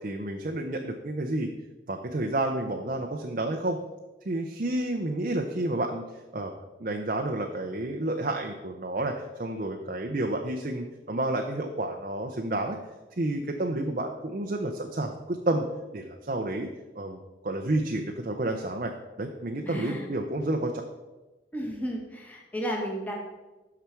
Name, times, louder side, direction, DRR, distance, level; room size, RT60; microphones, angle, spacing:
voice 1, 0.0-1.5 1.9-3.8 4.3-6.0 6.3-6.5 6.8-9.1 9.4-12.8 13.2-15.7 15.9-16.7 17.0-18.9 19.2-20.8, right 1 dB, 45° right, 3 dB, 0.6 m, -30 dB
voice 2, 19.6-20.0 21.5-23.1, equal, 10° left, -1 dB, 1.5 m, -33 dB
12.5 x 4.9 x 4.5 m, 1.1 s
head